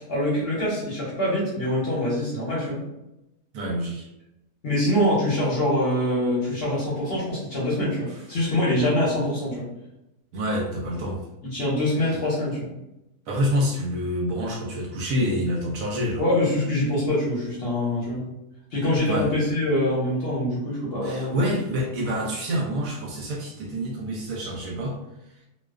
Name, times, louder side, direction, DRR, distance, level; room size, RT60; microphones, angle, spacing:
voice 1, 0.0-2.8 4.6-9.7 11.4-12.7 16.2-18.2 18.7-21.5, left 1 dB, 50° left, -7 dB, 0.8 m, -24 dB
voice 2, 3.5-4.1 10.3-11.2 12.0-12.2 13.3-16.2 19.1-19.3 21.0-25.0, equal, 70° right, -2 dB, 0.9 m, -27 dB
2.4 x 2.2 x 2.3 m, 0.91 s
omnidirectional pair, 1.6 m